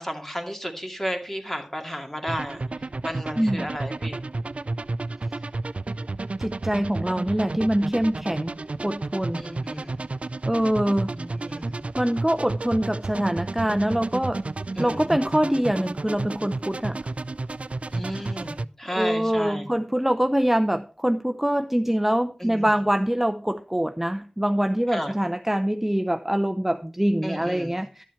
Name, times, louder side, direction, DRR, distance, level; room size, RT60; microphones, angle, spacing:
voice 1, 0.0-2.6 3.0-4.2 9.4-10.0 11.1-11.8 14.8-15.1 17.9-19.7 22.4-22.7 24.9-25.1 27.2-27.8, equal, 15° left, 3 dB, 2.3 m, -33 dB
sound 1, 2.3-18.7, right 3 dB, 65° right, 0.4 m, -32 dB
voice 2, 3.4-3.7 6.4-8.5 8.8-9.4 10.4-11.1 11.9-14.4 14.8-17.0 18.9-28.0, equal, 10° right, 8 dB, 0.6 m, -24 dB
11.5 x 7.4 x 4.4 m, 0.39 s
wide cardioid pair, 45°, 2 cm